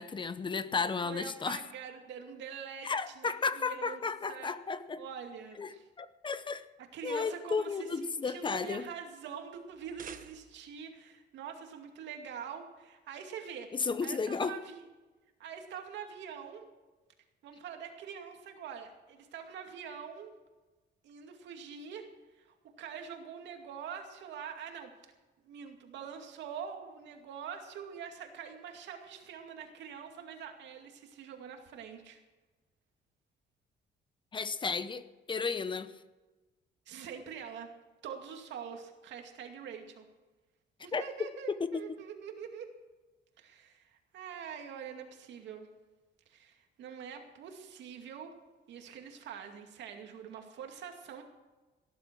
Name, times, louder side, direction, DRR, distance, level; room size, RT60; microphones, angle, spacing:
voice 1, 0.0-1.6 2.8-5.0 5.6-5.7 6.0-6.6 7.0-8.9 13.7-14.5 34.3-35.9 40.9-41.0 41.6-42.0, left 5 dB, 25° left, 13 dB, 0.7 m, -33 dB
voice 2, 1.0-4.0 4.3-4.5 5.0-5.9 6.9-14.9 15.4-16.6 17.4-20.3 21.0-22.1 22.4-24.9 25.4-32.2 36.9-37.7 38.0-40.0 40.8-42.7 43.4-45.7 46.3-48.3 48.7-51.2, right 7 dB, 85° right, 4 dB, 2.4 m, -45 dB
sound 1, 9.7-10.8, right 8 dB, 50° right, 1.1 m, -50 dB
17.5 x 11.0 x 6.1 m, 1.2 s
cardioid pair, 135°, 18 cm